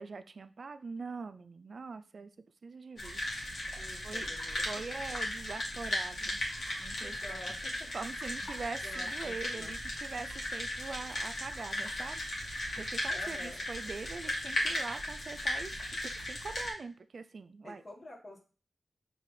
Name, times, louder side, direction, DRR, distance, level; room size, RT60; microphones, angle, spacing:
voice 1, 0.0-2.3 2.6-3.2 4.0-4.3 4.7-6.4 6.8-7.5 7.9-12.2 12.5-15.7 16.0-17.8, right 4 dB, 65° right, 11 dB, 0.3 m, -43 dB
sound 1, 3.0-16.7, left 1 dB, 70° left, 1.4 m, -36 dB
voice 2, 3.7-4.6 7.0-7.9 8.8-9.7 13.1-13.6 17.6-18.4, left 1 dB, 50° left, -1 dB, 1.4 m, -49 dB
5.2 x 2.8 x 3.2 m, 0.38 s
cardioid pair, 55°, 0 cm